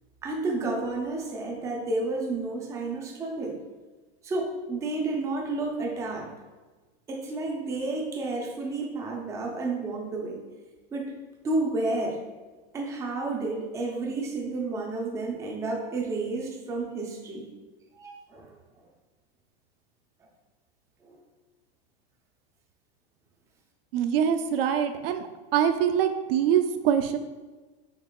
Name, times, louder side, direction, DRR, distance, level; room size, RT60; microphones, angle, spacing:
voice 1, 0.2-3.6 4.2-6.3 7.1-10.4 10.9-11.1 11.4-12.2 12.7-17.5 17.9-18.5 21.1-21.2, right 2 dB, 10° right, 0 dB, 0.4 m, -31 dB
voice 2, 23.9-25.2 25.5-27.2, right 9 dB, 65° right, 7 dB, 0.5 m, -24 dB
5.7 x 3.6 x 2.3 m, 1.2 s
supercardioid pair, 145°, 31 cm